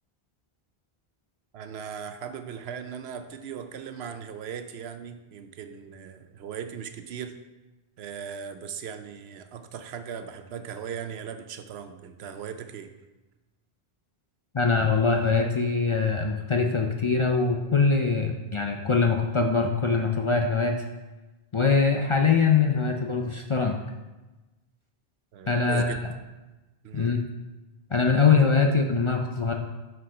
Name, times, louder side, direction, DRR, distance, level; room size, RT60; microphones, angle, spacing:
voice 1, 1.5-7.3 8.0-12.9 25.3-26.1 26.8-27.2, right 7 dB, 80° right, 9 dB, 0.9 m, -38 dB
voice 2, 14.5-20.8 21.5-23.7 25.5-25.9 26.9-27.2 27.9-29.5, left 4 dB, 40° left, 2 dB, 0.4 m, -23 dB
6.1 x 4.7 x 5.6 m, 1.1 s
omnidirectional pair, 1.1 m